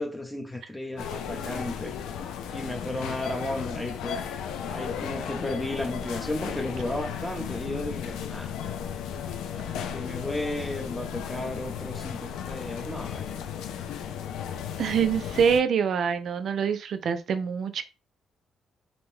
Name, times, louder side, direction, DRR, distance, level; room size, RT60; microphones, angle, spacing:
voice 1, 0.0-1.9 2.5-4.2 4.7-8.6 9.5-13.5, left 1 dB, 10° left, 0.6 m, -34 dB
sound 1, 1.0-15.6, left 8 dB, 90° left, 0.4 m, -35 dB
voice 2, 14.8-17.8, right 7 dB, 65° right, 0.4 m, -25 dB
2.6 x 2.1 x 3.2 m
cardioid pair, 90°, 0 cm